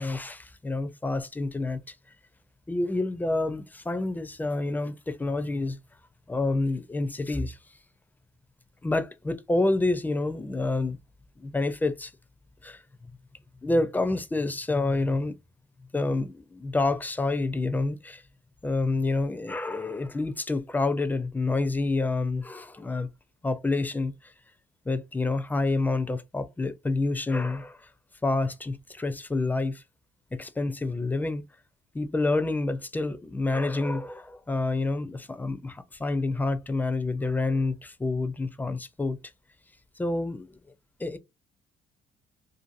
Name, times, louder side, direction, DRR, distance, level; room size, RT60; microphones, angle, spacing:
voice 1, 0.0-1.9 2.7-5.8 6.3-7.6 8.8-11.0 11.4-12.1 12.6-12.8 13.6-15.4 15.9-18.2 18.6-23.1 23.4-24.1 24.9-27.8 28.2-29.8 30.3-31.4 31.9-39.2 40.0-40.6 41.0-41.2, left 2 dB, 10° left, 0.4 m, -28 dB
2.6 x 2.5 x 2.5 m
cardioid pair, 110°, 17 cm